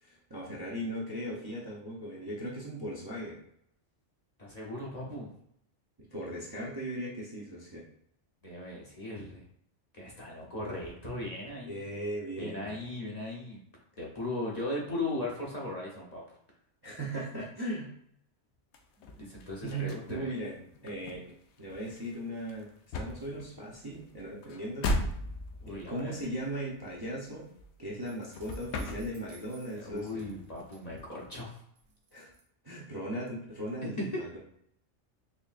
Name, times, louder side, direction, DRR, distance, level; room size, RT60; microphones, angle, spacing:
voice 1, 0.0-3.4 6.0-7.8 11.6-12.8 16.8-17.9 19.6-20.6 20.8-21.2 21.6-22.7 23.0-24.9 25.7-27.5 27.8-30.3 32.1-32.3 32.6-34.4, right 1 dB, 25° right, -5 dB, 0.5 m, -38 dB
voice 2, 4.4-5.3 8.4-9.5 9.9-11.9 12.4-13.6 14.0-16.2 19.2-20.4 25.6-26.2 29.8-31.6 33.8-34.1, left 2 dB, 40° left, -3 dB, 0.9 m, -38 dB
sound 1, 18.7-28.1 28.3-29.6 29.9-31.4, left 1 dB, 75° left, 0.9 m, -38 dB
sound 2, 28.0-31.4 31.8-32.4, right 3 dB, 90° right, 1.2 m, -59 dB
4.3 x 3.2 x 2.4 m, 0.70 s
omnidirectional pair, 1.2 m